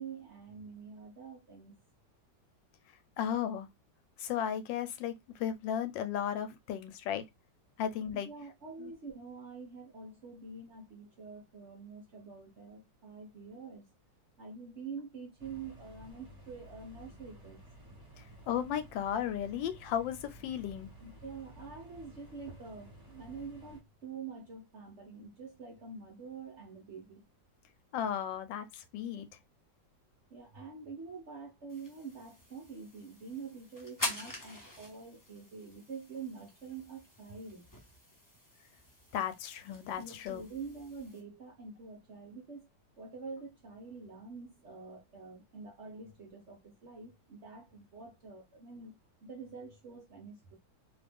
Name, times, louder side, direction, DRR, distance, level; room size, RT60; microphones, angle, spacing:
voice 1, 0.0-1.8 8.1-13.9 14.4-17.6 21.0-27.2 30.3-37.7 40.0-42.7 43.0-50.6, right 5 dB, 55° right, 0.8 m, -46 dB
voice 2, 3.2-3.7 4.2-7.3 7.8-8.3 8.8-8.9 18.2-20.9 27.9-29.3 39.1-40.4, left 9 dB, 90° left, 1.3 m, -35 dB
sound 1, 15.4-23.8, equal, 25° right, 1.0 m, -54 dB
sound 2, 31.7-41.2, left 1 dB, 20° left, 0.5 m, -45 dB
2.8 x 2.4 x 3.4 m
omnidirectional pair, 2.0 m